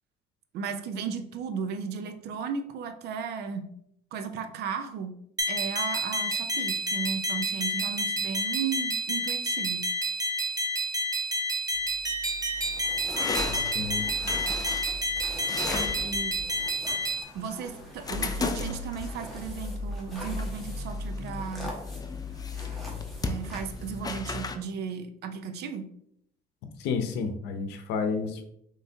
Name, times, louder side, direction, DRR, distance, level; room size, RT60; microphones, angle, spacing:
voice 1, 0.5-3.7 4.1-5.1 5.5-9.9 15.7-16.3 17.3-21.7 23.2-25.8, right 6 dB, 75° right, 8 dB, 0.6 m, -35 dB
sound 1, 5.4-17.2, right 1 dB, 20° right, 0.7 m, -29 dB
sound 2, 11.8-24.6, left 3 dB, 20° left, 0.4 m, -35 dB
sound 3, 12.5-24.2, equal, ahead, 1.4 m, -45 dB
voice 2, 13.5-14.1 26.8-28.4, left 5 dB, 85° left, 7 dB, 0.7 m, -31 dB
5.5 x 3.1 x 2.8 m, 0.72 s
cardioid pair, 110°, 17 cm